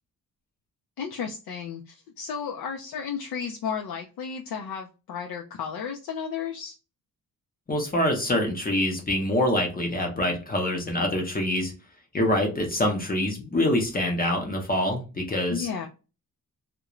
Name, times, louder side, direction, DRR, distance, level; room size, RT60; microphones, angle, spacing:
voice 1, 1.0-6.7 15.5-15.9, left 7 dB, 75° left, 0.5 m, -33 dB
voice 2, 7.7-11.7 12.1-15.7, left 1 dB, 25° left, 0.7 m, -25 dB
2.4 x 2.1 x 2.9 m
wide cardioid pair, 145°, 37 cm